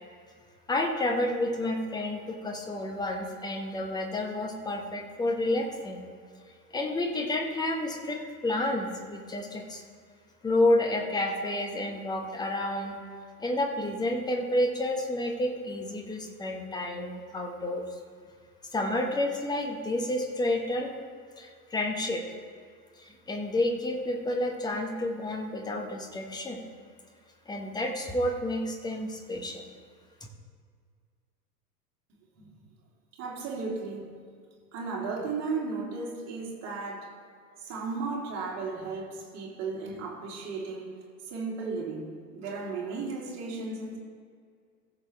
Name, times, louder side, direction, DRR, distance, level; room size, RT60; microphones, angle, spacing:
voice 1, 0.7-6.0 6.7-9.8 10.4-13.0 13.4-17.8 18.7-20.9 21.4-22.2 23.0-26.6 27.5-29.6, left 1 dB, 10° left, 2 dB, 1.0 m, -30 dB
voice 2, 33.1-34.1 34.7-37.2 37.6-40.9 41.2-44.0, right 4 dB, 30° right, -3 dB, 2.9 m, -35 dB
15.0 x 7.0 x 3.4 m, 2.1 s
figure-of-eight pair, 95°, 49 cm